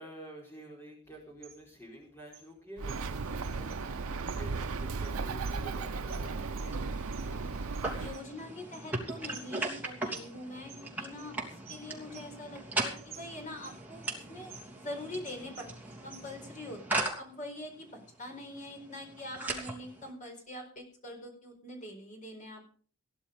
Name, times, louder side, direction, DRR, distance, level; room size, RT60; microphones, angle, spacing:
voice 1, 0.0-6.9, right 1 dB, 10° left, -1 dB, 4.6 m, -49 dB
sound 1, 1.1-16.5, right 7 dB, 30° right, 5.0 m, -55 dB
Bird, 2.8-8.2, right 4 dB, 85° right, 0.6 m, -36 dB
sound 2, 3.0-20.1, right 2 dB, 10° right, 3.0 m, -40 dB
voice 2, 7.9-11.3 11.7-22.7, left 1 dB, 35° left, 2 dB, 4.5 m, -44 dB
17.5 x 11.0 x 5.2 m, 0.44 s
head